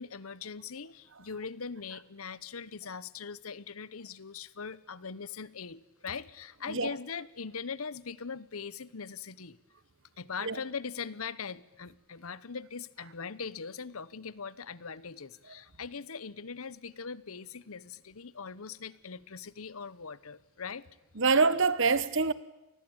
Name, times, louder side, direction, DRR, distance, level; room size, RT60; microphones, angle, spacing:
voice 1, 0.0-9.6 10.2-20.9, left 5 dB, 80° left, 1.0 m, -41 dB
voice 2, 21.2-22.3, right 4 dB, 60° right, 1.3 m, -25 dB
28.0 x 20.0 x 8.9 m
head